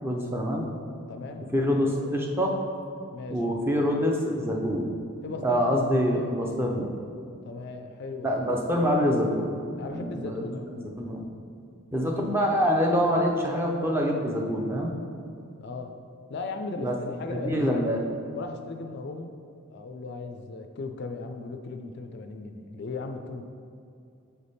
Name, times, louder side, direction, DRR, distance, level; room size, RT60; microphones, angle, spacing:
voice 1, 0.0-0.6 1.5-2.6 3.3-4.9 5.4-6.9 8.2-9.4 9.8-11.2 11.9-14.9 16.8-18.0, equal, 10° right, 0 dB, 0.5 m, -26 dB
voice 2, 1.1-1.5 3.1-3.4 5.2-5.8 7.4-8.4 9.8-10.9 15.6-15.9 16.3-17.9 18.3-19.3 19.7-23.4, left 3 dB, 50° left, 5 dB, 0.3 m, -37 dB
7.1 x 3.4 x 4.1 m, 2.5 s
head